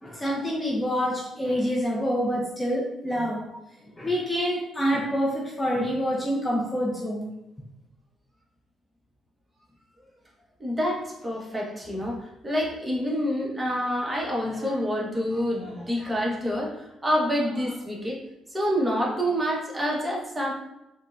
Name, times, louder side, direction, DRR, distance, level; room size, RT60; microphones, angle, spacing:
voice 1, 0.0-3.4 4.0-7.3, equal, 15° left, -3 dB, 0.5 m, -27 dB
voice 2, 10.6-18.2 18.5-20.5, equal, 20° right, -3 dB, 0.9 m, -27 dB
4.2 x 2.1 x 2.4 m, 0.91 s
cardioid pair, 85°, 0 cm